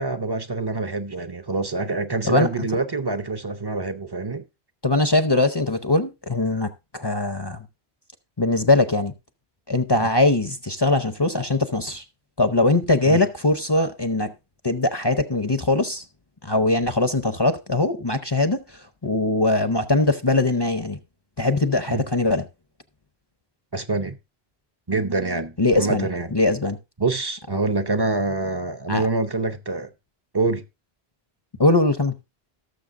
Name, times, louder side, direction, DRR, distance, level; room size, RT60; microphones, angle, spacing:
voice 1, 0.0-4.5 9.9-10.1 13.1-13.2 21.9-22.0 23.7-24.2 24.9-26.3 27.0-29.9 30.3-30.6, right 3 dB, 25° right, 0.6 m, -26 dB
voice 2, 4.8-7.6 8.4-9.1 9.7-12.0 12.4-14.3 14.6-16.0 16.4-18.6 19.0-21.0 21.4-22.5 25.6-26.8 28.9-29.0 31.6-32.1, left 2 dB, 30° left, 0.6 m, -21 dB
18.0 x 6.8 x 2.5 m
omnidirectional pair, 1.1 m